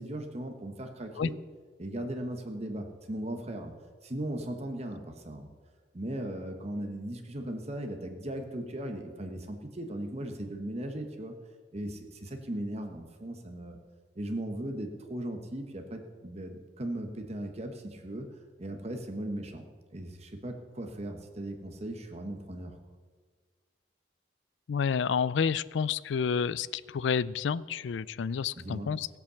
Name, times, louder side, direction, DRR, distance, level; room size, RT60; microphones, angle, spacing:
voice 1, 0.0-1.4 1.8-3.7 4.0-5.5 5.9-11.3 11.7-13.8 14.2-18.3 18.6-19.6 19.9-22.7 28.5-28.9, right 1 dB, 35° right, 5 dB, 1.1 m, -37 dB
voice 2, 24.7-29.1, left 6 dB, 75° left, 19 dB, 0.4 m, -29 dB
16.5 x 8.3 x 6.9 m, 1.5 s
head